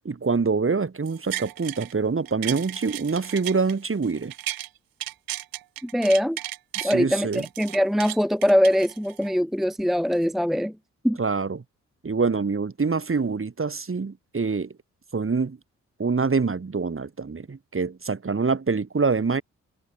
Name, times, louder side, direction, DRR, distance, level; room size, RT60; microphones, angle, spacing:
voice 1, 0.1-4.3 6.8-7.5 11.2-11.6 12.0-14.7 15.1-15.6 16.0-19.4, right 4 dB, 35° right, 3.6 m, -25 dB
sound 1, 1.1-1.9 2.3-4.7 5.0-7.0 7.3-9.3 9.8-9.9, right 14 dB, 70° right, 1.4 m, -35 dB
voice 2, 5.8-6.4 6.8-10.7 11.0-11.2, equal, ahead, 0.9 m, -22 dB
hypercardioid pair, 40°, 36 cm